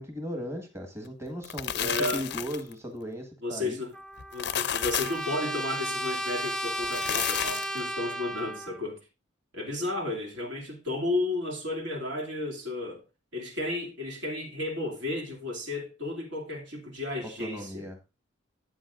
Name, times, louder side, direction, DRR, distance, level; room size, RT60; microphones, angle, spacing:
voice 1, 0.0-3.8 17.4-18.0, equal, 15° right, 1.5 m, -37 dB
sound 1, 1.3-2.7 4.2-5.3 6.8-7.8, left 10 dB, 55° left, 0.5 m, -31 dB
voice 2, 1.7-2.3 3.4-3.9 4.3-9.0 9.5-13.0 13.3-17.9, left 2 dB, 65° right, 2.5 m, -33 dB
Trumpet, 3.9-8.8, equal, 5° left, 0.4 m, -34 dB
13.0 x 8.5 x 2.5 m
head